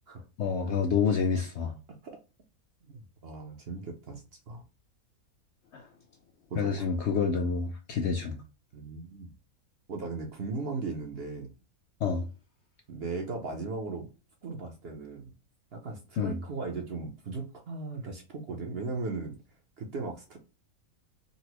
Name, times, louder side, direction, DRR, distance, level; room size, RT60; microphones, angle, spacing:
voice 1, 0.4-1.8 5.7-5.9 6.6-8.4 12.0-12.2 16.2-16.4, left 5 dB, 65° left, 0.7 m, -28 dB
voice 2, 2.8-4.6 6.5-6.9 8.7-9.3 9.9-11.5 12.9-14.1 14.4-15.3 15.7-19.4 19.8-20.4, right 3 dB, 55° right, 0.7 m, -37 dB
3.9 x 2.1 x 2.8 m
omnidirectional pair, 1.5 m